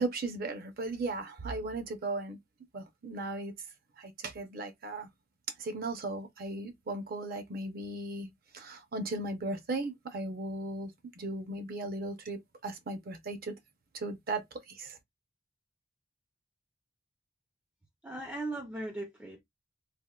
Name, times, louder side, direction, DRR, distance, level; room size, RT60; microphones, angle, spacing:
voice 1, 0.0-2.4 2.7-3.5 4.0-5.1 5.6-10.9 11.2-13.5 13.9-15.0, right 2 dB, 50° right, 0.6 m, -37 dB
voice 2, 18.0-19.4, right 2 dB, 10° right, 0.4 m, -38 dB
3.4 x 2.1 x 2.2 m
head